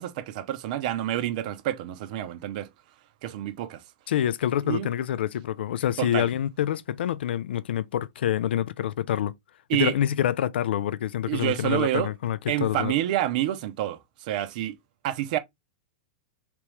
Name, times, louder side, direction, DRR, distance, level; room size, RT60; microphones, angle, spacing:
voice 1, 0.0-2.7 3.2-3.8 4.6-4.9 6.0-6.3 9.7-9.9 11.3-12.1 12.5-14.8 15.0-15.4, right 13 dB, 50° right, 0.6 m, -28 dB
voice 2, 4.1-9.3 9.7-12.9, left 11 dB, 85° left, 0.4 m, -27 dB
3.4 x 3.0 x 3.1 m
supercardioid pair, 160°, 6 cm